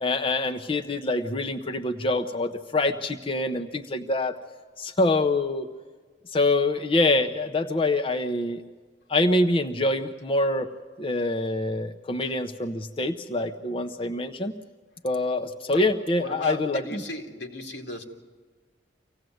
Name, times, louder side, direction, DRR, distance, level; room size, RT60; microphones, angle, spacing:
voice 1, 0.0-4.4 4.8-5.7 6.3-8.6 9.1-10.7 11.0-14.5 15.0-17.0, left 2 dB, 30° left, 5 dB, 0.8 m, -25 dB
voice 2, 16.2-18.0, left 1 dB, 85° left, 2 dB, 2.4 m, -35 dB
25.5 x 17.0 x 7.9 m, 1.5 s
head